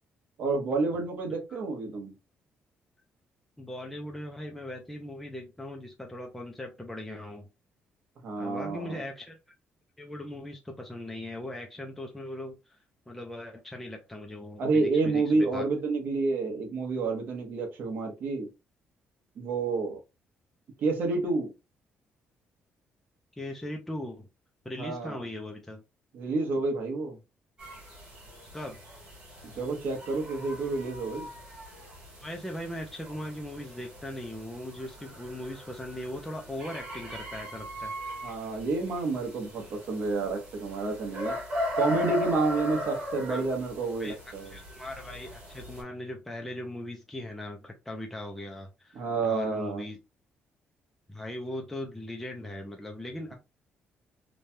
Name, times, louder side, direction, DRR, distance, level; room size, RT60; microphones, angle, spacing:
voice 1, 0.4-2.1 8.2-9.0 14.6-18.5 19.4-20.0 20.8-21.5 24.8-25.2 26.1-27.2 29.6-31.3 38.2-41.3 41.8-44.6 48.9-49.8, right 3 dB, 55° right, 1.0 m, -29 dB
voice 2, 3.6-7.5 8.4-9.4 10.0-12.8 13.1-15.6 23.4-24.3 24.6-25.8 28.5-28.8 32.2-37.9 43.3-43.4 44.0-44.2 44.5-50.0 51.1-53.3, left 1 dB, 5° left, 0.4 m, -39 dB
sound 1, 27.6-45.8, left 1 dB, 25° right, 1.6 m, -39 dB
3.1 x 2.2 x 2.6 m
cardioid pair, 180°, 4 cm